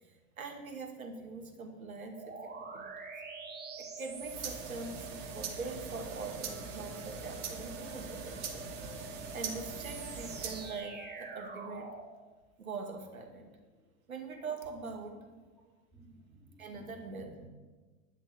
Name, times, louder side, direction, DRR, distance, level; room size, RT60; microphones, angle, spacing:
voice 1, 0.0-2.9 3.8-8.7 9.3-11.9 12.6-13.5 14.1-15.2 16.6-17.3, right 4 dB, 85° right, 3 dB, 2.3 m, -43 dB
sound 1, 2.1-12.1, right 5 dB, 25° right, 2.8 m, -46 dB
sound 2, 4.1-10.8, right 5 dB, 60° right, 2.5 m, -42 dB
sound 3, 6.4-11.5, left 2 dB, 55° left, 2.2 m, -55 dB
voice 2, 15.9-17.5, right 2 dB, 5° left, -11 dB, 4.9 m, -55 dB
11.5 x 6.5 x 8.8 m, 1.3 s
figure-of-eight pair, 90°, 41 cm